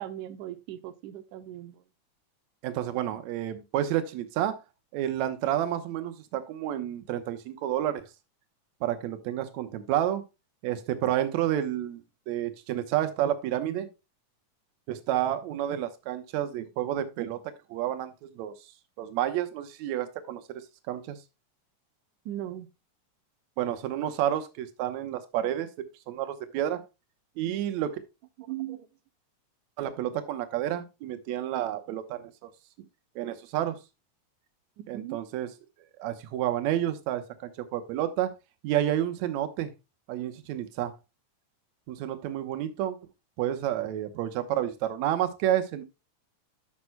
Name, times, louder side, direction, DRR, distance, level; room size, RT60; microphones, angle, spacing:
voice 1, 0.0-1.8 22.3-22.7 28.4-28.9 34.8-35.2, right 13 dB, 90° right, 2.2 m, -38 dB
voice 2, 2.6-4.6 4.9-8.0 8.8-10.2 10.6-12.0 12.3-13.9 14.9-17.4 17.7-18.5 19.0-20.6 20.9-21.2 23.6-25.7 26.1-26.8 27.4-27.9 29.8-32.5 33.2-33.8 34.9-35.5 36.0-38.3 38.6-39.7 40.1-40.9 41.9-43.0 43.4-45.8, right 11 dB, 75° right, 2.2 m, -30 dB
14.0 x 6.0 x 2.2 m
omnidirectional pair, 3.4 m